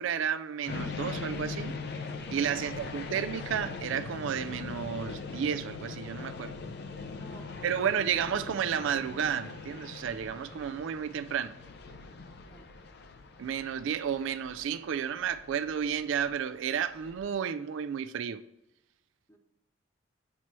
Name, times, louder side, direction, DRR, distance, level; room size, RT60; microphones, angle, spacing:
voice 1, 0.0-1.8 2.3-6.5 7.6-11.5 13.4-18.4, right 8 dB, 70° right, 0.3 m, -32 dB
sound 1, 0.7-17.2, left 4 dB, 55° left, 0.5 m, -41 dB
voice 2, 2.5-2.9 6.6-6.7 7.1-7.9 12.4-12.8 19.3-19.4, right 1 dB, 15° left, 0.9 m, -54 dB
7.3 x 3.1 x 4.3 m
head